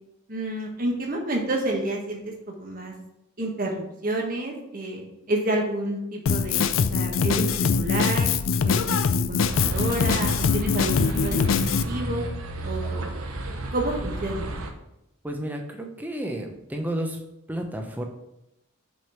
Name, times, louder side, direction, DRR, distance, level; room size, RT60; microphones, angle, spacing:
voice 1, 0.3-2.2 2.5-2.9 3.4-8.3 8.6-12.2 12.6-13.2 13.7-14.4, right 1 dB, 40° right, 1 dB, 1.5 m, -29 dB
Drum kit, 6.3-11.8, left 5 dB, 65° left, 0.4 m, -23 dB
sound 1, 9.4-14.7, right 2 dB, 80° right, 0.9 m, -32 dB
voice 2, 15.2-17.2 17.5-18.0, right 1 dB, 10° right, 3 dB, 0.8 m, -31 dB
6.2 x 5.3 x 5.9 m, 0.86 s
head